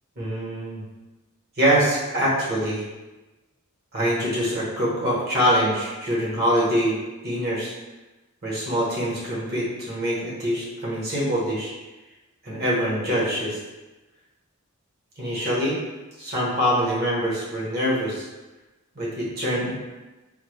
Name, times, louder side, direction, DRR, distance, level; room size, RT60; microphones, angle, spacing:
voice 1, 0.2-0.8 1.6-2.8 3.9-7.7 8.4-11.7 12.4-13.6 15.2-15.8 16.2-18.3 18.9-19.7, equal, 45° right, -6 dB, 1.0 m, -24 dB
3.7 x 2.2 x 3.0 m, 1.1 s
head